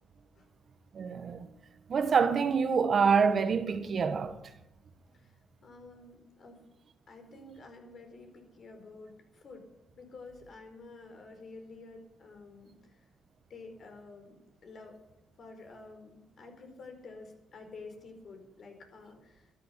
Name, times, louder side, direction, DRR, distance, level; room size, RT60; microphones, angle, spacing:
voice 1, 0.9-1.5 1.9-4.4, right 5 dB, 50° right, 1.3 m, -26 dB
voice 2, 5.1-6.6 7.1-9.7 10.0-13.0 13.5-14.4 14.6-15.0 15.4-19.5, left 3 dB, 55° left, 4.5 m, -50 dB
12.5 x 11.5 x 8.2 m
cardioid pair, 90°, 0 cm